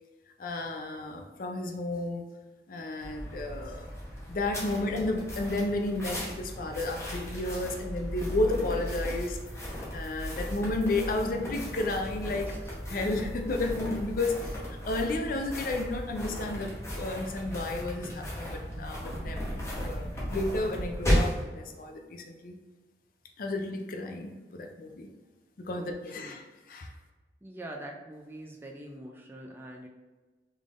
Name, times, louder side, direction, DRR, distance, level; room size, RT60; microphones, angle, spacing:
voice 1, 0.4-2.2 2.7-3.9 4.3-12.5 12.9-19.5 19.8-22.6 23.4-25.1 25.6-26.9, left 2 dB, 50° left, 4 dB, 0.4 m, -32 dB
sound 1, 3.0-21.4, equal, 15° left, 0.9 m, -35 dB
voice 2, 12.5-12.8 25.8-26.4 27.4-29.9, right 1 dB, 10° right, 0 dB, 0.3 m, -44 dB
Explosion, 16.1-21.5, equal, 70° right, 0.5 m, -42 dB
3.7 x 3.4 x 2.5 m, 1.2 s
head